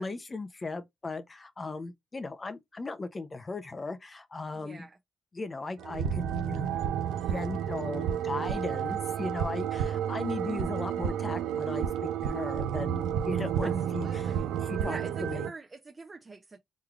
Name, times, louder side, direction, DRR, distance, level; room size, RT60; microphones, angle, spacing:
voice 1, 0.0-4.9 5.3-6.7 7.2-14.3 14.6-15.5, left 3 dB, 25° left, 0.5 m, -37 dB
voice 2, 4.5-5.0 13.6-14.6 14.8-16.6, right 3 dB, 25° right, 0.6 m, -45 dB
sound 1, 5.8-15.5, right 9 dB, 85° right, 0.4 m, -31 dB
3.5 x 3.1 x 2.3 m
cardioid pair, 90°, 0 cm